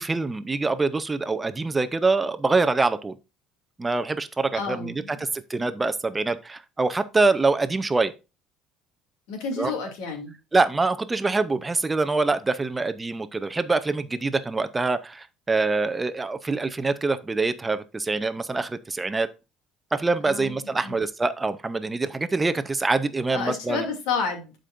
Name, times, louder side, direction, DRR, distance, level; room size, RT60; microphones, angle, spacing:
voice 1, 0.0-3.1 3.8-8.1 9.6-9.7 10.5-19.3 19.9-23.8, right 3 dB, 15° right, 0.5 m, -25 dB
voice 2, 4.5-5.3 9.3-10.3 20.2-20.9 23.3-24.5, left 5 dB, 85° left, 2.4 m, -30 dB
12.0 x 5.1 x 2.5 m
cardioid pair, 145°, 0 cm